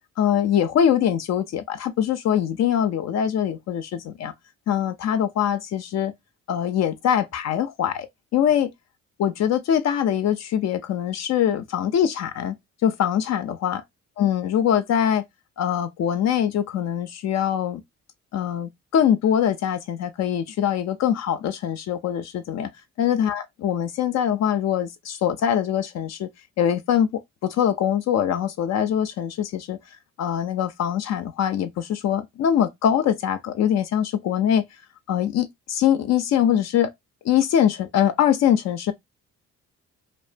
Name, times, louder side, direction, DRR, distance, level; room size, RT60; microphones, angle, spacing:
voice 1, 0.2-4.3 4.7-6.1 6.5-8.7 9.2-12.6 12.8-13.8 14.2-15.2 15.6-17.8 18.3-22.7 23.0-26.3 26.6-29.8 30.2-34.7 35.1-36.9 37.2-38.9, left 9 dB, 60° left, 0.4 m, -23 dB
2.5 x 2.1 x 2.4 m
cardioid pair, 90°, 30 cm